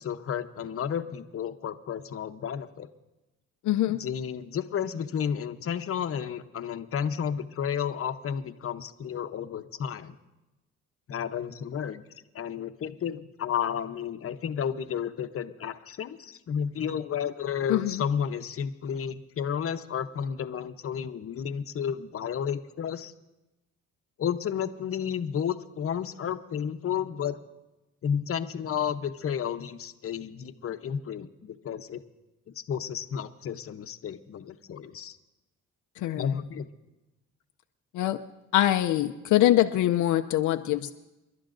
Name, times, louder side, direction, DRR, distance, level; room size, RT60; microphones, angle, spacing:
voice 1, 0.0-2.9 3.9-10.2 11.1-12.0 12.3-23.1 24.2-27.4 28.0-32.0 32.5-35.2 36.2-36.7, left 8 dB, 50° left, 9 dB, 0.8 m, -32 dB
voice 2, 3.6-4.0 17.7-18.0 36.0-36.4 37.9-38.2 38.5-40.9, left 13 dB, 80° left, 7 dB, 0.6 m, -24 dB
29.5 x 11.5 x 2.6 m, 1.0 s
cardioid pair, 90°, 30 cm